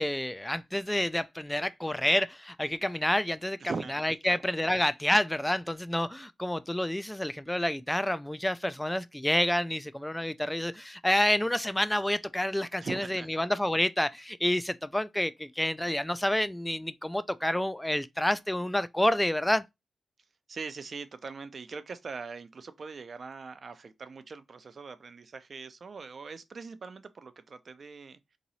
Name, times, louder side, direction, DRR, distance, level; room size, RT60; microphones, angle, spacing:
voice 1, 0.0-19.6, left 1 dB, 10° left, 0.3 m, -29 dB
voice 2, 3.6-4.4 12.8-13.4 20.5-28.4, right 4 dB, 60° right, 0.5 m, -41 dB
3.0 x 2.7 x 4.0 m
cardioid pair, 50°, 0 cm